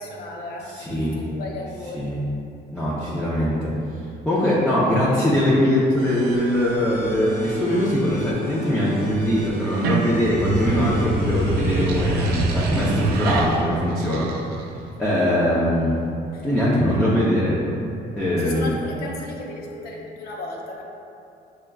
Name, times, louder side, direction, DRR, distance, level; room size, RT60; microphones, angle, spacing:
voice 1, 0.0-2.0 16.3-16.5 18.4-20.8, left 2 dB, 70° left, -1 dB, 0.7 m, -35 dB
voice 2, 0.7-1.2 1.9-2.2 2.7-3.7 4.3-14.3 15.0-16.0 16.4-17.6 18.2-18.8, equal, 5° left, -9 dB, 0.6 m, -21 dB
sound 1, 6.0-13.5, equal, 35° right, 1.0 m, -39 dB
sound 2, 9.6-14.9, right 2 dB, 70° right, 0.4 m, -26 dB
6.2 x 2.4 x 2.3 m, 2.6 s
cardioid pair, 110°, 17 cm